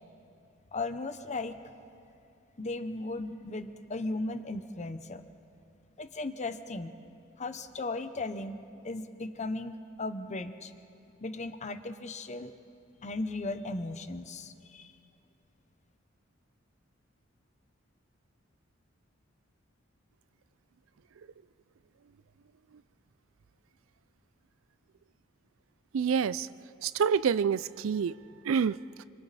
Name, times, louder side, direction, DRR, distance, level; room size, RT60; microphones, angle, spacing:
voice 1, 0.7-1.6 2.6-5.2 6.0-6.9 7.4-10.7 11.2-12.6 13.0-14.9, left 2 dB, 35° left, 10 dB, 0.9 m, -36 dB
voice 2, 25.9-26.5 26.8-28.1 28.5-28.8, right 6 dB, 85° right, 18 dB, 0.4 m, -27 dB
26.5 x 23.5 x 4.2 m, 2.5 s
head